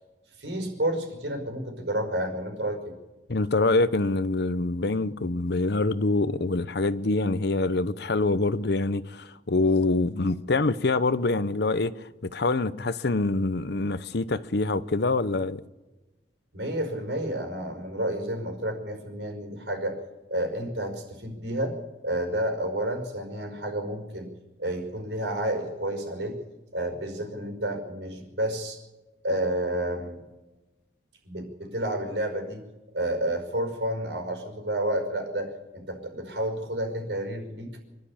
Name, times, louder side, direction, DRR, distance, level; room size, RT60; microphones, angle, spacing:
voice 1, 0.4-2.9 16.5-20.0 20.3-21.8 22.0-24.3 24.6-26.4 26.7-28.8 29.2-30.2 31.3-32.6 32.9-37.7, right 1 dB, 80° right, 5.2 m, -30 dB
voice 2, 3.3-15.6, left 2 dB, 65° left, 0.9 m, -25 dB
25.0 x 12.5 x 8.8 m
head